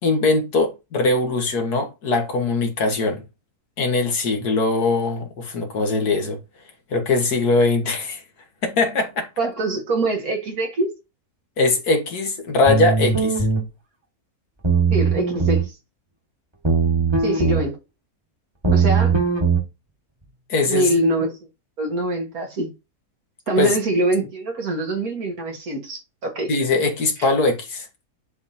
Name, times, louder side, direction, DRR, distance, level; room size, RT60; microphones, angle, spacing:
voice 1, 0.0-3.2 3.8-6.4 6.9-8.2 8.6-9.3 11.6-13.5 20.5-21.0 23.6-23.8 26.5-27.9, left 3 dB, 75° left, 1.9 m, -21 dB
voice 2, 9.4-10.9 14.9-15.7 17.2-17.8 18.7-19.1 20.7-21.4 21.8-22.7 23.5-26.5 27.2-27.3, right 2 dB, 65° right, 2.1 m, -24 dB
sound 1, 12.7-13.6 14.6-15.7 16.6-17.6 18.6-19.6, right 5 dB, 20° right, 1.6 m, -19 dB
10.5 x 3.6 x 2.7 m
omnidirectional pair, 1.7 m